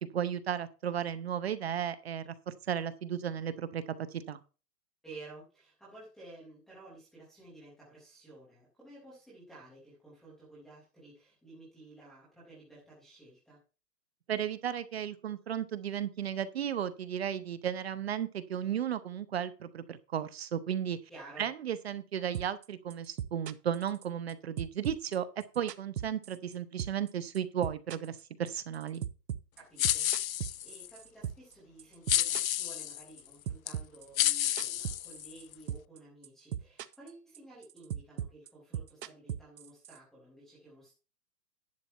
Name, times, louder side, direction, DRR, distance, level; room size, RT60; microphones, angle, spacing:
voice 1, 0.0-4.4 14.3-21.0 21.4-29.0, right 9 dB, 40° right, 13 dB, 0.7 m, -34 dB
voice 2, 5.0-13.6 21.1-21.5 29.6-40.9, right 2 dB, ahead, -10 dB, 0.6 m, -53 dB
sound 1, 22.3-22.7 22.9-24.3 24.6-26.5 26.8-27.1 27.3-31.5 31.8-33.2 33.5-35.4 35.7-36.0 36.2-37.1 37.3-40.0, right 10 dB, 90° right, 0.9 m, -37 dB
sound 2, 29.8-30.9 32.1-33.0 33.7-33.8 34.2-35.5, left 12 dB, 60° left, 0.5 m, -30 dB
10.5 x 6.5 x 4.4 m, 0.33 s
hypercardioid pair, 165°, 48 cm